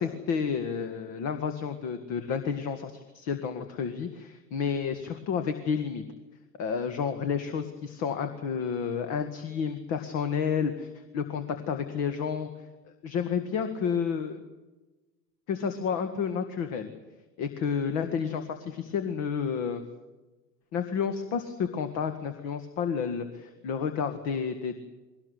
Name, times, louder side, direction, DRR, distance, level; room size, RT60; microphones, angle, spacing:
voice 1, 0.0-6.0 6.6-12.5 13.0-14.4 15.5-16.9 17.4-19.8 20.7-24.8, left 6 dB, 30° left, 8 dB, 2.0 m, -30 dB
22.5 x 19.0 x 8.2 m, 1.1 s
figure-of-eight pair, 100°, 48 cm